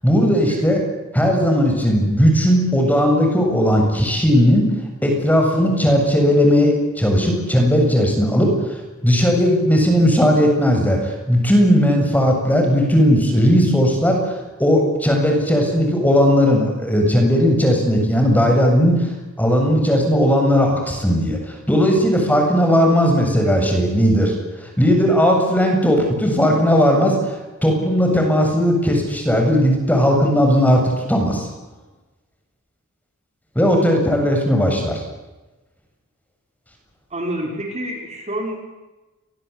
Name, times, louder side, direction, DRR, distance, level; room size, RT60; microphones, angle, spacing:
voice 1, 0.0-0.8 1.1-4.7 5.0-19.0 19.4-24.3 24.6-31.5 33.6-35.0, equal, 10° left, 2 dB, 7.4 m, -17 dB
voice 2, 37.1-38.6, right 1 dB, 30° right, 1 dB, 5.8 m, -27 dB
29.0 x 24.0 x 8.4 m, 1.1 s
head